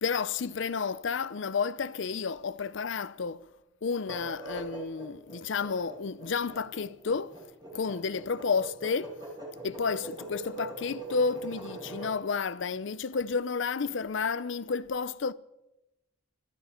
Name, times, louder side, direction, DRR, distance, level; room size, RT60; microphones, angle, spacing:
voice 1, 0.0-3.4 3.8-7.3 7.7-9.1 9.6-15.3, left 5 dB, 60° left, 0.5 m, -31 dB
sound 1, 4.0-12.2, right 2 dB, 20° right, 4.4 m, -42 dB
19.5 x 13.5 x 4.4 m
head